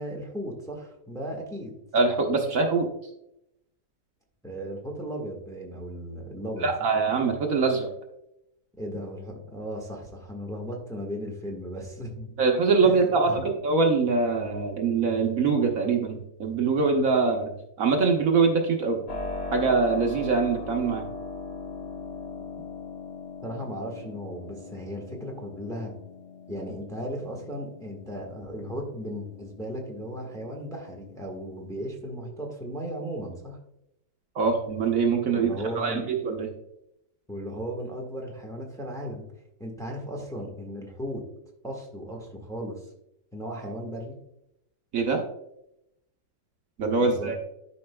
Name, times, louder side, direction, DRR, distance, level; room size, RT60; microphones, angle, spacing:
voice 1, 0.0-1.8 4.4-6.7 8.8-12.3 12.8-13.4 22.4-22.5 23.4-25.9 26.5-33.6 35.3-36.0 37.3-39.2 39.6-41.2 41.6-42.9 43.3-44.1 47.0-47.3, equal, ahead, -1 dB, 1.2 m, -36 dB
voice 2, 1.9-2.9 6.6-7.9 12.4-13.3 13.6-19.0 19.5-21.1 34.3-36.5 44.9-45.2 46.8-47.4, right 4 dB, 60° right, 2 dB, 1.2 m, -23 dB
Keyboard (musical), 19.1-31.8, left 3 dB, 30° left, 1.0 m, -40 dB
12.0 x 5.2 x 2.2 m, 0.81 s
omnidirectional pair, 1.7 m